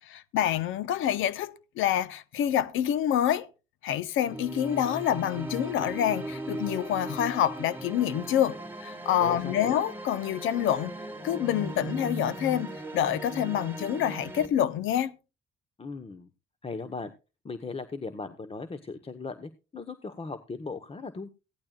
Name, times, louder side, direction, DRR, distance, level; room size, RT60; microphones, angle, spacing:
voice 1, 0.3-3.5 3.8-10.9 11.2-15.1, left 10 dB, 90° left, 0.9 m, -27 dB
sound 1, 4.2-14.5, right 1 dB, 10° right, 2.6 m, -38 dB
voice 2, 9.2-9.7 15.8-16.3 16.6-17.1 17.4-21.3, left 4 dB, 30° left, 1.1 m, -38 dB
17.0 x 11.5 x 2.4 m
cardioid pair, 90°, 20 cm